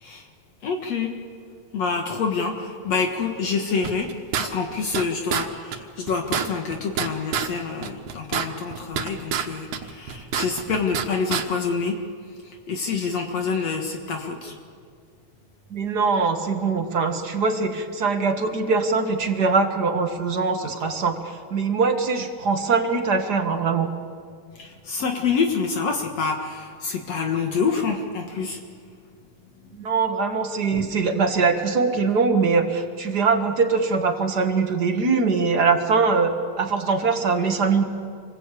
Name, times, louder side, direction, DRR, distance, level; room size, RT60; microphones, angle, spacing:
voice 1, 0.6-1.1 1.7-4.1 4.4-12.0 12.4-14.6 24.6-28.6, left 5 dB, 65° left, 2 dB, 2.7 m, -27 dB
sound 1, 3.8-5.0 5.3-5.5 5.7-5.8 6.1-7.5 7.8-9.5 9.7-11.1 11.3-11.4, right 8 dB, 85° right, 2.6 m, -27 dB
voice 2, 15.7-23.9 29.7-37.8, right 4 dB, 40° right, 6 dB, 1.7 m, -22 dB
27.5 x 20.5 x 8.4 m, 2.1 s
omnidirectional pair, 3.3 m